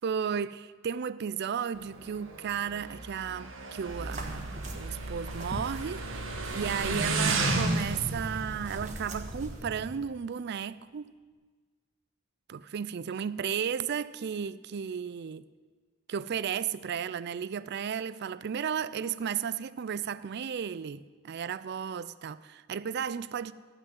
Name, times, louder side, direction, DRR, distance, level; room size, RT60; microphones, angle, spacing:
voice 1, 0.0-6.1 6.5-11.1 12.5-15.4 16.1-23.5, right 7 dB, 55° right, 0.4 m, -34 dB
Motorcycle, 1.7-10.0, right 3 dB, 80° right, 1.4 m, -34 dB
sound 1, 3.8-9.6, right 1 dB, 40° right, 1.5 m, -40 dB
13.0 x 6.2 x 9.4 m
head